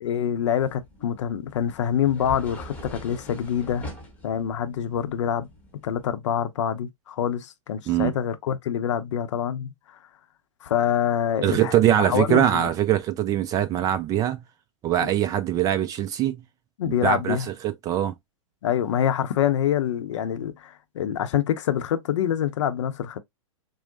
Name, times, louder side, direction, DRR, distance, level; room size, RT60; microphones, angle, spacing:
voice 1, 0.0-3.8 4.2-5.5 5.8-9.7 10.6-12.7 15.0-15.1 16.8-17.5 18.6-23.2, left 9 dB, 60° left, 0.6 m, -26 dB
Door-Slide-Open, 0.6-6.1, left 1 dB, 10° left, 1.1 m, -43 dB
voice 2, 11.4-14.4 14.8-16.4 16.9-18.1, right 11 dB, 20° right, 0.3 m, -23 dB
4.5 x 2.1 x 2.6 m
hypercardioid pair, 110°, 17 cm